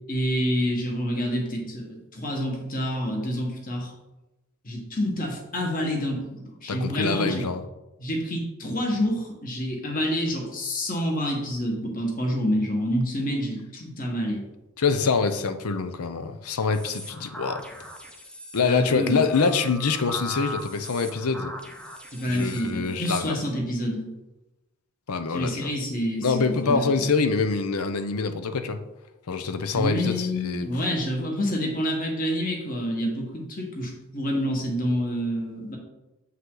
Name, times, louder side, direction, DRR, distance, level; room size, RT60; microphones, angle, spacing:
voice 1, 0.1-3.9 4.6-7.4 8.0-14.4 18.6-19.2 22.1-24.1 25.3-27.0 29.7-35.8, equal, 40° left, 0 dB, 1.5 m, -28 dB
voice 2, 6.7-7.6 14.8-17.7 18.5-21.5 22.2-23.4 25.1-25.7 26.2-28.8 29.3-30.9, left 4 dB, 90° left, 9 dB, 0.7 m, -25 dB
sound 1, 16.7-23.2, left 1 dB, 5° left, 0.6 m, -39 dB
7.5 x 5.6 x 3.9 m, 1.0 s
head